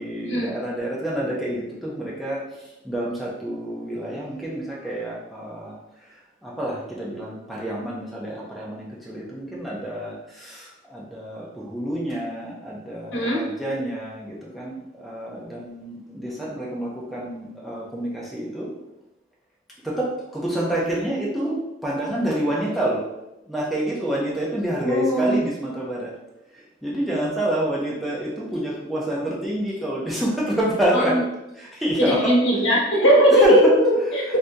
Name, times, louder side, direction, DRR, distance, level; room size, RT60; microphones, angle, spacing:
voice 1, 0.0-2.4 2.8-5.7 6.4-18.7 19.8-21.6 21.8-23.0 23.5-26.1 26.5-31.2 31.6-32.4 33.3-33.7 34.3-34.4, right 1 dB, ahead, -6 dB, 0.5 m, -27 dB
voice 2, 13.1-13.4 24.8-25.4 30.9-31.2 32.0-34.4, equal, 85° left, -3 dB, 1.0 m, -19 dB
2.7 x 2.7 x 3.4 m, 0.92 s
head